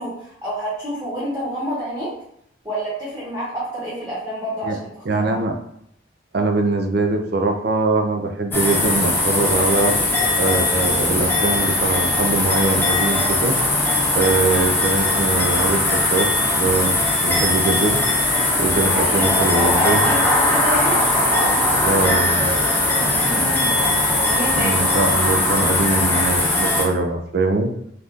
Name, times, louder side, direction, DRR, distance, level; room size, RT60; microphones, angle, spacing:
voice 1, 0.0-2.1 2.6-5.4 18.8-22.2 23.1-23.9 24.2-24.9, equal, 15° right, -9 dB, 1.0 m, -28 dB
voice 2, 5.1-5.5 6.3-9.9 10.4-13.5 14.2-16.9 17.2-18.0 18.6-20.1 21.9-22.4 24.6-27.7, right 2 dB, 55° right, 4 dB, 0.4 m, -22 dB
sound 1, 8.5-26.8, left 2 dB, 10° left, 0.5 m, -19 dB
2.6 x 2.4 x 3.5 m, 0.73 s
head